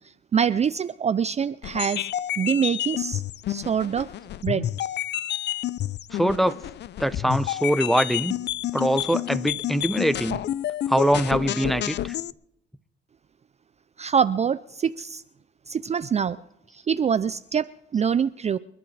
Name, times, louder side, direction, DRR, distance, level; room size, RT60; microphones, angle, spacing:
voice 1, 0.3-2.1 2.4-3.2 3.5-4.1 4.4-4.7 14.0-15.2 15.7-16.4 16.7-18.6, right 7 dB, 35° right, 14 dB, 0.4 m, -24 dB
sound 1, 1.6-12.3, left 12 dB, 60° left, 0.5 m, -30 dB
voice 2, 6.1-6.6 7.0-8.4 8.7-10.4 10.9-12.1, equal, ahead, 12 dB, 0.8 m, -23 dB
29.5 x 11.5 x 3.3 m, 0.84 s
cardioid pair, 90°, 20 cm